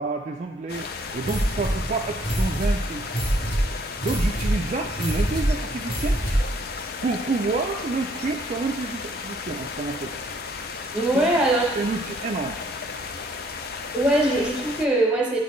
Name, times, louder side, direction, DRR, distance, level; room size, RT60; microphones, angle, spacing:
voice 1, 0.0-3.0 4.0-6.2 7.0-10.1 11.1-11.3 11.8-12.6, right 3 dB, 35° right, 1 dB, 0.3 m, -29 dB
sound 1, 0.7-14.9, left 5 dB, 50° left, 0.4 m, -34 dB
sound 2, 1.2-6.6, right 1 dB, 25° left, 1.2 m, -25 dB
voice 2, 10.9-11.6 13.9-15.4, right 1 dB, 5° right, -2 dB, 0.9 m, -21 dB
9.9 x 4.1 x 3.1 m, 1.1 s
head